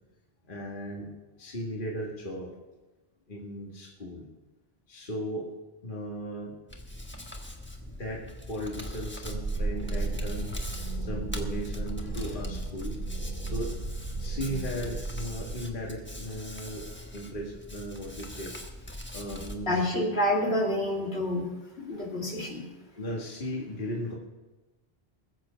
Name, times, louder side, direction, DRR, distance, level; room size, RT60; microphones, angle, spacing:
voice 1, 0.5-1.1 1.4-2.5 3.3-4.2 4.9-5.5 5.8-6.6 8.0-10.5 11.0-13.0 13.4-13.8 14.2-16.9 17.1-18.5 19.1-19.9 22.1-22.3 23.0-24.1, equal, 50° left, -2 dB, 1.9 m, -36 dB
Hands, 6.7-19.5, left 1 dB, 10° left, 1.2 m, -42 dB
sound 1, 9.2-15.6, right 2 dB, 50° right, 1.6 m, -34 dB
voice 2, 19.7-21.5 21.8-22.6, left 1 dB, 75° left, 0 dB, 2.4 m, -28 dB
20.5 x 7.7 x 5.0 m, 1.1 s
omnidirectional pair, 1.1 m